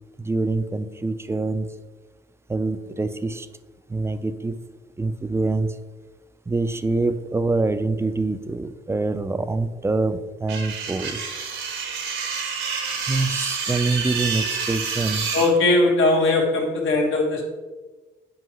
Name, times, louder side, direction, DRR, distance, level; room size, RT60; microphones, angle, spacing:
voice 1, 0.2-1.7 2.5-3.5 3.9-4.6 5.0-5.8 6.5-11.2 13.1-15.3, right 3 dB, 15° right, 11 dB, 0.4 m, -25 dB
sound 1, 10.5-15.5, right 5 dB, 85° right, 1.2 m, -28 dB
voice 2, 15.3-17.4, left 2 dB, 75° left, -1 dB, 1.5 m, -19 dB
7.8 x 5.0 x 3.0 m, 1.3 s
cardioid pair, 90°, 20 cm